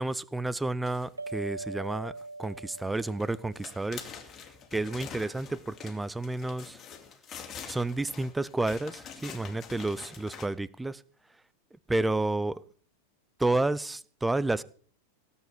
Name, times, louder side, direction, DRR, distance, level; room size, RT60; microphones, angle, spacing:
voice 1, 0.0-2.1 2.4-4.1 4.7-6.8 7.7-11.0 11.9-12.6 13.4-14.6, right 2 dB, 5° right, 20 dB, 0.6 m, -30 dB
sound 1, 0.8-1.4 2.2-2.5 2.8-10.5, left 7 dB, 25° left, 2.8 m, -45 dB
sound 2, 1.2-4.2, right 3 dB, 80° right, 0.6 m, -42 dB
18.0 x 8.4 x 6.7 m, 0.43 s
figure-of-eight pair, 90°, 0 cm